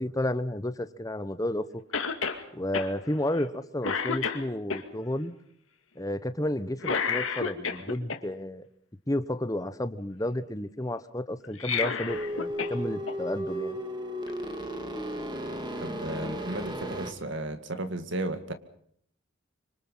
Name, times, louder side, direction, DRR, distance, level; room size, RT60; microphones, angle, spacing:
voice 1, 0.0-1.7 2.5-5.3 6.0-8.6 9.1-13.8, left 1 dB, 15° left, 12 dB, 1.0 m, -31 dB
Cough, 1.9-2.4 2.7-2.9 3.4-3.6 3.8-4.8 6.8-8.2 11.4-12.8 13.1-13.2 14.3-14.4, left 5 dB, 90° left, 2.4 m, -30 dB
sound 1, 12.1-17.1, equal, 20° right, 2.7 m, -34 dB
voice 2, 15.8-18.5, right 2 dB, 65° right, 9 dB, 2.1 m, -34 dB
26.0 x 25.0 x 5.6 m, 0.66 s
head